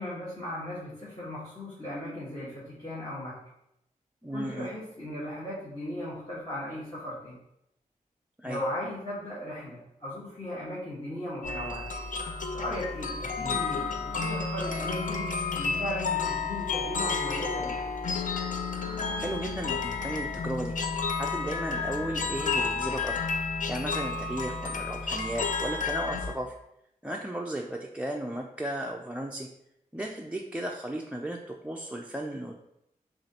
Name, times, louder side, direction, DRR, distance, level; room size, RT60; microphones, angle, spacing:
voice 1, 0.0-3.4 4.3-7.4 8.4-11.9 12.5-15.2 15.5-17.8, left 1 dB, 30° left, -8 dB, 1.4 m, -37 dB
voice 2, 4.2-4.7 8.4-8.6 13.4-13.6 19.2-20.7 21.1-23.2 23.7-26.5 27.0-29.5 29.9-32.6, right 1 dB, 10° right, 1 dB, 0.4 m, -35 dB
sound 1, 11.4-26.3, left 4 dB, 65° left, 0.5 m, -31 dB
6.0 x 2.5 x 2.9 m, 0.80 s
wide cardioid pair, 85°, 14 cm